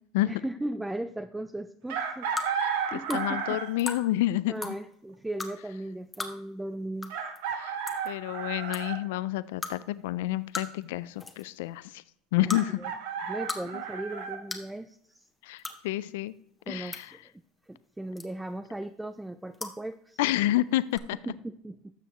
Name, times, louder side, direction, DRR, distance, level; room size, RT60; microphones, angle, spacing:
voice 1, 0.3-3.6 4.5-7.1 12.5-12.9 13.3-15.2 16.7-17.2 17.7-20.2 21.3-21.9, right 1 dB, 10° right, 10 dB, 0.4 m, -37 dB
Chicken rooster, 1.9-3.8 5.5-5.6 7.1-9.0 12.5-14.4, right 6 dB, 75° right, 1.3 m, -33 dB
sound 1, 2.4-2.5 3.1-3.2 3.8-4.0 4.6-4.7 5.4-5.5 6.1-6.3 7.0-7.1 7.4-7.5 7.9-8.1 8.7-8.8 9.6-9.7 10.5-10.8 11.2-11.5 12.4-12.6 13.2-13.6 13.9-14.0 14.5-14.7 15.6-15.8 16.6-17.0 18.2-18.5 19.5-19.7 20.9-21.0, left 3 dB, 20° left, 1.2 m, -35 dB
voice 2, 2.6-4.7 7.5-7.8 8.0-12.0 12.3-12.8 13.7-13.8 15.4-16.3 16.7-17.2 20.2-21.2, left 15 dB, 80° left, 17 dB, 0.3 m, -29 dB
12.5 x 6.9 x 3.0 m, 0.67 s
hypercardioid pair, 90°, 0 cm